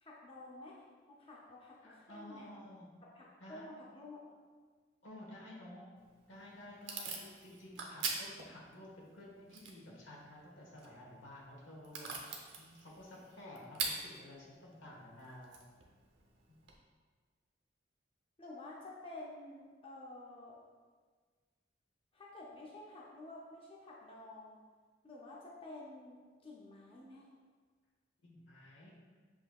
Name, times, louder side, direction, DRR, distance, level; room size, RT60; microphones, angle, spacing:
voice 1, 0.0-0.7 1.1-2.5 3.0-4.3 7.4-7.5 18.4-20.6 22.1-24.6 25.0-27.3, left 2 dB, 30° left, -4 dB, 0.5 m, -51 dB
voice 2, 1.8-2.9 3.4-3.6 5.0-5.9 6.3-12.1 12.6-15.6 16.5-16.6 28.2-29.0, left 1 dB, 85° left, -4 dB, 1.2 m, -52 dB
Packing tape duct tape / Tearing, 6.0-16.7, right 4 dB, 85° right, 0.7 m, -45 dB
7.6 x 2.7 x 2.3 m, 1.5 s
head